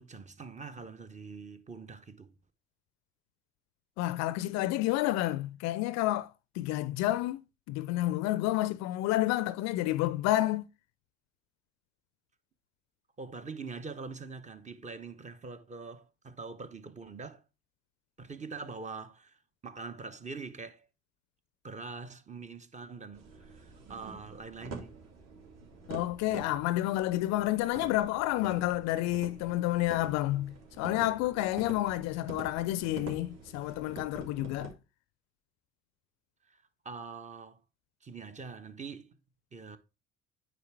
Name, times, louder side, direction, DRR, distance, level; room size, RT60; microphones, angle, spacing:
voice 1, 0.0-2.3 13.2-17.4 18.2-20.9 21.6-25.0 36.4-37.6 38.0-39.2 39.5-39.8, right 4 dB, 20° right, 0.9 m, -44 dB
voice 2, 4.0-10.7 25.9-34.7, left 16 dB, 50° left, 0.5 m, -30 dB
sound 1, 23.1-34.7, right 4 dB, 50° right, 2.7 m, -47 dB
9.3 x 3.4 x 4.6 m
hypercardioid pair, 70°, 35 cm